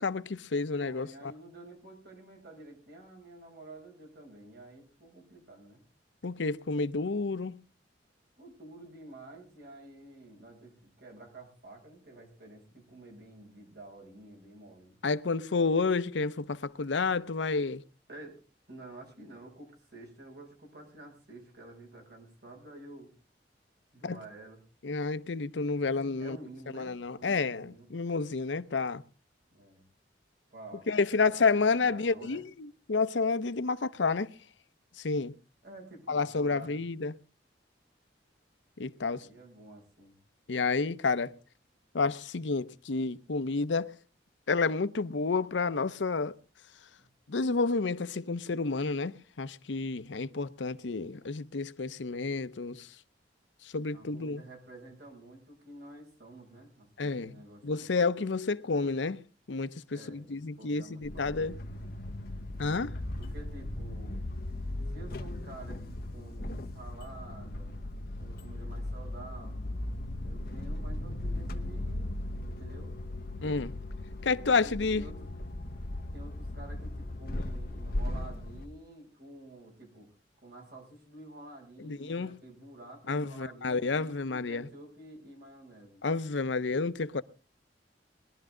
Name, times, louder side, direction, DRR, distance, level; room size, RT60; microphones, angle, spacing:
voice 1, 0.0-1.3 6.2-7.6 15.0-17.8 24.0-24.2 24.8-26.4 26.7-29.0 30.9-34.3 35.0-35.3 36.1-37.1 38.8-39.3 40.5-41.3 41.9-43.9 44.5-46.4 47.3-52.9 53.6-54.4 57.0-57.4 57.6-59.2 59.5-61.5 62.6-63.0 73.4-73.7 74.2-75.1 81.8-82.4 83.1-84.7 86.0-87.2, left 4 dB, 85° left, 0.7 m, -30 dB
voice 2, 0.7-5.8 8.4-15.0 18.1-18.4 18.7-23.1 23.9-24.6 26.2-27.9 29.5-29.8 30.5-30.9 31.1-32.4 35.6-36.8 39.0-40.2 47.0-47.1 53.9-57.9 59.9-62.0 63.2-64.2 64.9-67.7 68.2-69.8 70.2-72.1 72.4-72.9 74.6-75.3 76.1-80.1 80.4-86.0, right 2 dB, 65° right, 6.7 m, -50 dB
sound 1, 61.0-78.7, left 1 dB, 55° left, 1.1 m, -37 dB
21.0 x 12.0 x 3.8 m
head